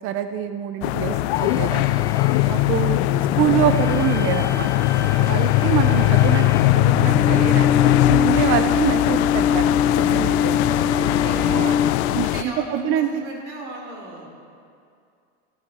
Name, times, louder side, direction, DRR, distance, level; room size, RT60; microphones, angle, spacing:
voice 1, 0.0-2.0 2.5-3.0 3.4-4.9 5.3-10.6 11.5-11.8 12.1-13.2, right 11 dB, 40° right, 9 dB, 0.5 m, -25 dB
sound 1, 0.8-12.4, left 17 dB, 75° left, 0.5 m, -20 dB
sound 2, 1.3-12.4, left 7 dB, 10° left, 0.5 m, -25 dB
voice 2, 5.0-5.4 10.9-11.6 12.2-14.3, equal, 90° right, 0 dB, 3.4 m, -36 dB
14.0 x 12.0 x 4.3 m, 2.4 s
supercardioid pair, 125°, 34 cm